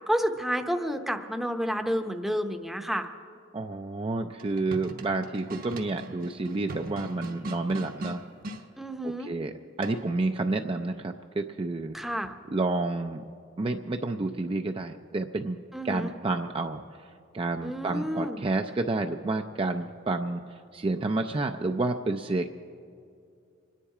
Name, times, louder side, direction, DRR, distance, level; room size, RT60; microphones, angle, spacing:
voice 1, 0.1-3.1 8.8-9.3 11.9-12.3 15.7-16.1 17.6-18.4, equal, ahead, 6 dB, 0.7 m, -30 dB
voice 2, 3.5-8.2 9.0-9.5 9.8-12.0 12.5-13.2 13.6-22.6, right 2 dB, 25° right, 5 dB, 0.4 m, -30 dB
sound 1, 4.3-8.6 9.8-10.2, right 1 dB, 45° right, 0.9 m, -40 dB
26.0 x 10.0 x 4.8 m, 2.4 s
head